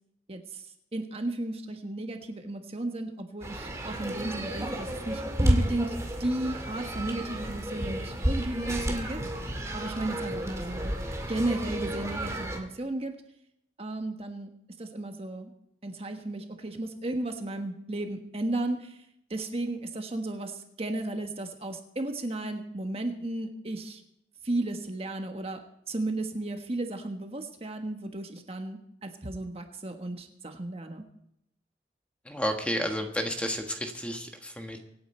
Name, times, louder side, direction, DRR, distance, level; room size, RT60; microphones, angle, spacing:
voice 1, 0.3-0.7 0.9-5.9 6.2-9.2 9.7-10.9 11.3-13.1 13.8-14.5 14.8-15.5 15.8-19.0 19.3-24.0 24.4-25.6 25.9-31.0, right 2 dB, 35° right, 5 dB, 1.3 m, -34 dB
sound 1, 3.4-12.6, equal, 15° right, 2.1 m, -31 dB
voice 2, 32.2-34.8, equal, 5° left, 4 dB, 1.5 m, -31 dB
25.0 x 9.4 x 4.4 m, 0.77 s
head